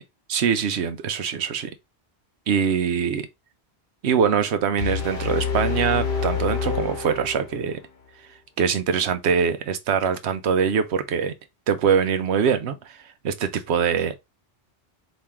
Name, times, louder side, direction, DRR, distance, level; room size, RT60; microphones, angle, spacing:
voice 1, 0.3-1.7 2.5-3.3 4.0-7.8 8.6-11.3 11.7-14.2, right 7 dB, 90° right, 1.0 m, -23 dB
sound 1, 4.8-7.8, left 6 dB, 55° left, 1.0 m, -27 dB
4.3 x 3.1 x 3.5 m
omnidirectional pair, 1.1 m